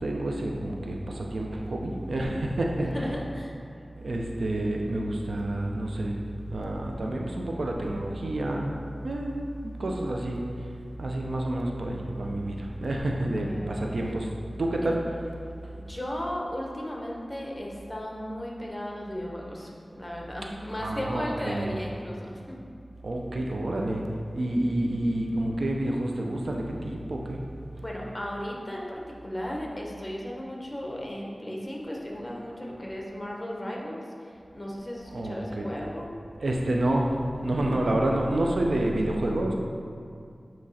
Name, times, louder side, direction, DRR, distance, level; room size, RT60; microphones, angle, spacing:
voice 1, 0.0-2.9 4.0-6.2 6.5-8.7 9.0-10.4 11.0-14.3 14.6-15.0 20.8-21.8 23.0-24.0 24.3-27.4 35.1-35.7 36.4-37.1 37.4-39.5, right 1 dB, 80° right, 0 dB, 0.6 m, -28 dB
voice 2, 2.8-3.5 13.4-14.0 15.8-22.6 25.0-25.2 27.8-34.0 34.5-36.1, equal, 25° left, -2 dB, 1.1 m, -35 dB
8.7 x 3.1 x 4.2 m, 2.4 s
wide cardioid pair, 45°, 0 cm